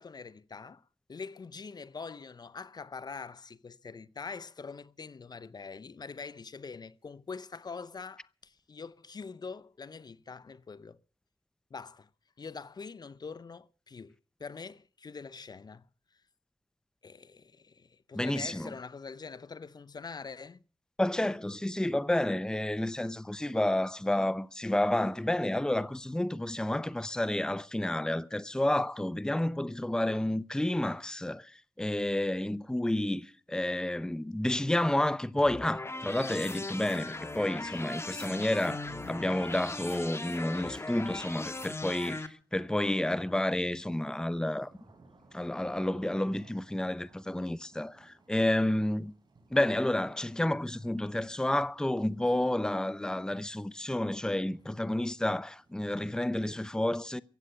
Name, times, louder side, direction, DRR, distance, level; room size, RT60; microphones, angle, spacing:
voice 1, 0.0-11.0 11.7-12.1 12.4-14.1 14.4-15.9 16.1-16.2 17.0-20.6, left 5 dB, 55° left, 0.7 m, -44 dB
voice 2, 18.1-18.7 21.0-44.7 45.3-49.1 49.5-57.2, left 1 dB, 10° left, 0.7 m, -30 dB
sound 1, 35.4-42.3, left 2 dB, 30° left, 1.8 m, -39 dB
sound 2, 40.8-41.2 42.4-56.6, right 3 dB, 60° right, 4.1 m, -62 dB
15.5 x 8.1 x 9.7 m
cardioid pair, 55°, 9 cm